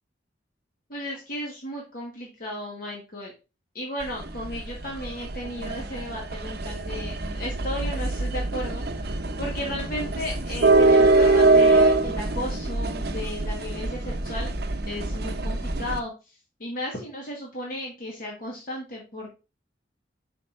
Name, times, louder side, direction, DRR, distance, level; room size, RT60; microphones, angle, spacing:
voice 1, 0.9-3.3 3.7-14.5 14.9-19.3, left 1 dB, 50° left, -2 dB, 1.5 m, -35 dB
sound 1, 4.0-16.0, right 2 dB, 60° right, 0.8 m, -24 dB
5.7 x 4.3 x 4.3 m, 0.30 s
head